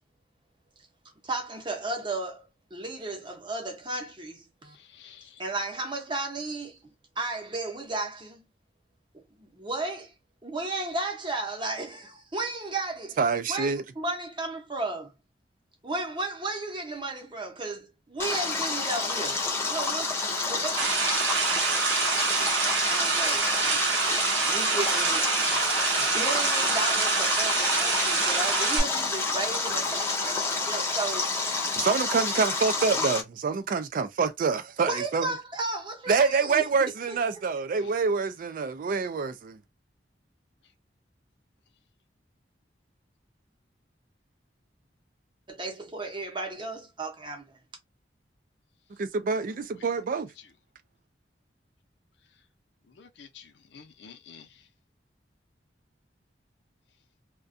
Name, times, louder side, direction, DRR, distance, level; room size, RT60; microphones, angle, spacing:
voice 1, 1.2-4.8 5.4-8.4 9.1-10.1 10.4-13.2 13.5-15.1 15.8-19.4 19.7-20.8 22.8-23.8 24.5-25.6 26.0-31.3 34.8-36.7 37.1-37.2 45.5-47.6, right 2 dB, 25° right, 0.7 m, -34 dB
voice 2, 4.9-5.4 28.8-29.0 29.7-29.8 37.8-37.9 53.0-54.5, left 7 dB, 75° left, 0.6 m, -48 dB
voice 3, 13.2-13.8 31.7-35.3 36.1-39.6 49.0-50.3, right 5 dB, 50° right, 0.3 m, -26 dB
Stream, 18.2-33.2, left 3 dB, 15° left, 0.5 m, -29 dB
sound 1, 20.8-28.8, right 6 dB, 80° right, 0.6 m, -27 dB
2.4 x 2.2 x 2.5 m
head